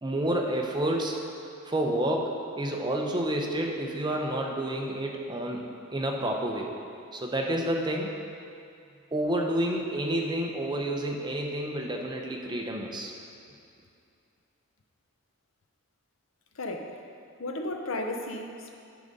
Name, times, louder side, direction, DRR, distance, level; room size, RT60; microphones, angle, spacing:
voice 1, 0.0-1.2 1.6-6.7 7.1-8.1 9.1-13.1, right 1 dB, 20° right, 1 dB, 0.6 m, -29 dB
voice 2, 16.6-16.9 17.4-18.7, left 1 dB, 65° left, 3 dB, 0.7 m, -34 dB
9.8 x 4.0 x 5.3 m, 2.6 s
head